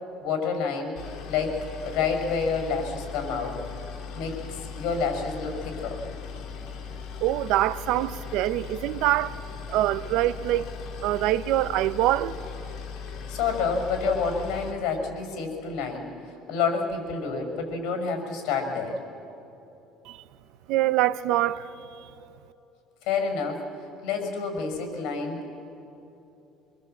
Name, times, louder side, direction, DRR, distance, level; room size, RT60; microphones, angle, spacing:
voice 1, 0.2-0.9 1.3-3.6 4.1-6.0 13.3-16.1 16.5-19.0 23.0-23.6 24.0-25.6, left 5 dB, 75° left, 5.7 m, -28 dB
Boat Water vehicle, 1.0-14.7, left 6 dB, 55° left, 2.7 m, -39 dB
voice 2, 7.2-9.4 9.7-10.7 11.0-12.4 20.1-20.2 20.7-22.1, right 14 dB, 75° right, 0.7 m, -25 dB
25.5 x 23.0 x 7.9 m
cardioid pair, 145°, 0 cm